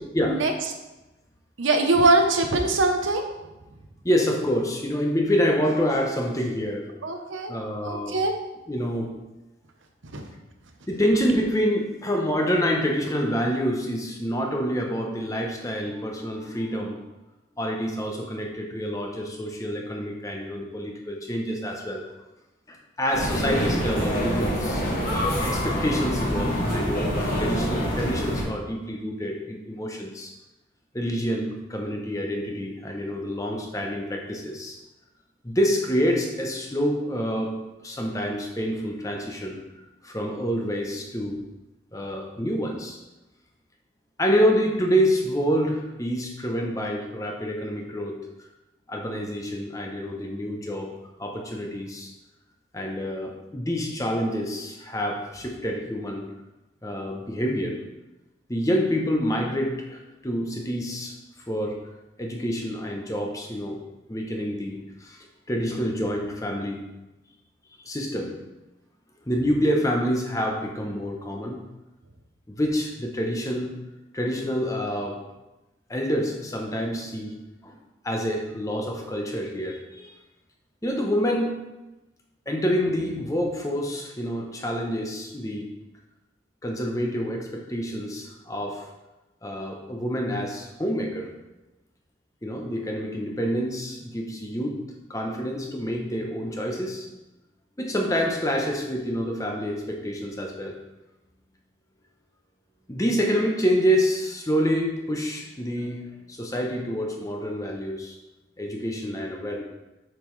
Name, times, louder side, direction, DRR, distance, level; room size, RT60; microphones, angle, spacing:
voice 1, 1.6-3.3 7.0-7.5 7.8-8.3 10.1-10.3, right 2 dB, 80° right, 4 dB, 0.9 m, -22 dB
voice 2, 4.0-6.9 7.5-8.1 8.7-9.1 10.9-17.0 17.6-22.0 22.7-24.8 25.4-30.3 30.9-34.8 35.4-37.5 37.8-39.6 40.0-41.4 41.9-43.0 44.2-48.2 48.9-50.9 51.2-52.1 52.7-56.3 56.8-57.8 58.5-61.1 61.5-61.8 62.2-63.8 64.1-65.2 65.5-66.8 67.8-68.4 69.3-71.6 72.5-73.8 74.1-75.2 75.9-77.3 77.6-77.8 78.0-80.1 80.8-81.6 82.5-85.7 86.6-88.9 89.4-91.3 92.4-94.8 95.1-97.1 97.8-100.8 102.9-108.2 108.6-109.6, equal, 15° left, 1 dB, 0.8 m, -27 dB
sound 1, 23.1-28.4, equal, 45° left, 1.9 m, -26 dB
7.4 x 5.7 x 3.2 m, 1.0 s
head